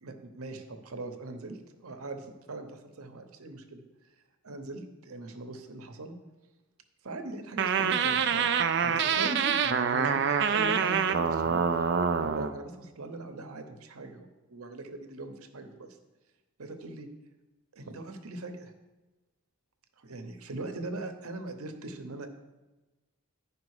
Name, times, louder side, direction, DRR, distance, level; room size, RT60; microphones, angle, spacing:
voice 1, 0.0-1.6 1.8-3.8 4.4-6.1 7.0-8.5 8.8-11.6 12.2-15.9 16.6-17.1 17.7-18.7 20.0-22.3, right 2 dB, 75° right, 6 dB, 0.8 m, -40 dB
sound 1, 7.6-12.5, right 6 dB, 50° right, 0.4 m, -26 dB
10.5 x 5.0 x 4.8 m, 1.1 s
head